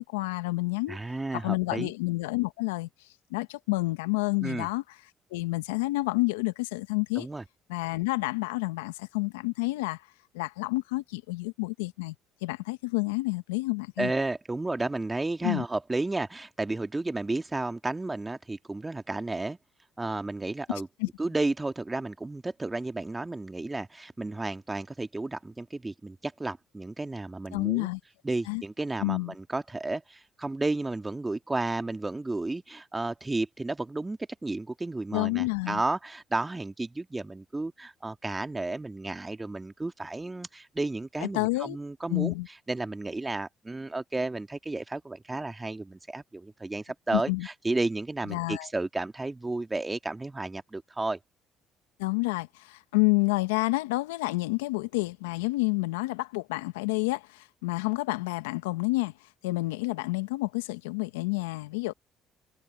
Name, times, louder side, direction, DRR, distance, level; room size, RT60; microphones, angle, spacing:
voice 1, 0.0-1.0 1.4-2.9 3.3-4.8 5.3-7.3 7.7-10.0 10.3-12.1 12.4-14.1 15.4-15.6 21.0-21.1 27.5-28.0 28.5-28.6 29.0-29.3 35.1-35.8 41.2-41.8 42.1-42.5 47.1-47.5 48.3-48.7 52.0-59.1 59.4-61.9, left 23 dB, 85° left, 1.3 m, -29 dB
voice 2, 0.9-1.9 4.4-4.7 7.2-7.4 14.0-19.6 20.0-20.9 21.2-27.9 28.2-42.3 42.7-51.2, right 2 dB, 20° right, 2.0 m, -32 dB
hypercardioid pair, 55°, 0 cm